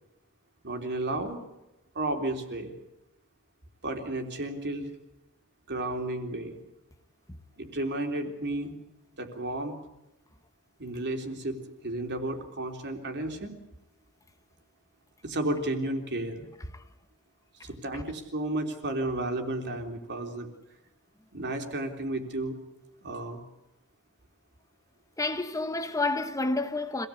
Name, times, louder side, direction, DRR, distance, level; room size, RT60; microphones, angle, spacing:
voice 1, 0.6-1.4 2.0-2.7 3.8-4.9 5.7-6.6 7.6-8.8 9.2-9.8 10.8-11.6 11.8-13.5 15.2-16.4 17.6-20.5 21.3-22.6 23.0-23.5, right 1 dB, 50° right, 3.5 m, -32 dB
voice 2, 25.2-27.1, left 2 dB, 15° left, 1.2 m, -29 dB
26.0 x 18.0 x 8.5 m
head